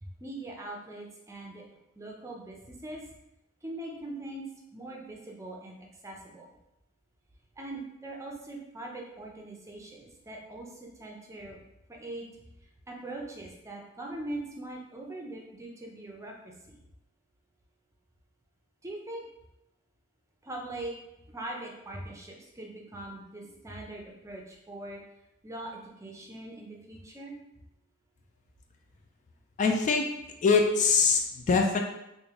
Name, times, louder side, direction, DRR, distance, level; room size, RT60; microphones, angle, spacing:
voice 1, 0.0-1.6 2.0-3.0 3.6-4.4 4.7-6.5 7.6-11.6 11.9-12.2 12.9-16.8 18.8-19.3 20.4-20.9 21.3-25.0 25.4-27.3, right 1 dB, 15° right, -1 dB, 0.5 m, -41 dB
voice 2, 29.6-30.0 30.4-31.8, left 4 dB, 40° left, 3 dB, 0.3 m, -23 dB
3.3 x 2.5 x 3.6 m, 0.87 s
head